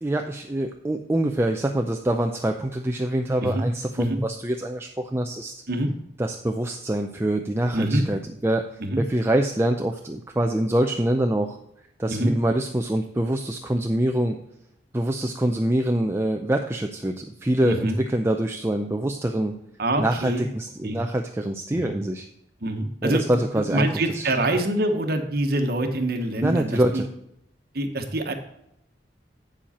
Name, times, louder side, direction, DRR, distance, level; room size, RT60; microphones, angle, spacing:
voice 1, 0.0-5.5 6.2-8.6 9.0-11.6 12.0-14.4 14.9-19.5 20.0-22.3 23.0-24.3 26.4-27.1, right 1 dB, 15° right, 4 dB, 0.5 m, -25 dB
voice 2, 7.7-8.1 8.8-9.0 12.1-12.3 17.6-18.0 19.8-20.4 20.8-21.0 21.7-22.0 22.6-27.0 27.7-28.3, right 1 dB, 55° right, 4 dB, 1.2 m, -25 dB
8.8 x 7.4 x 4.2 m, 0.80 s
head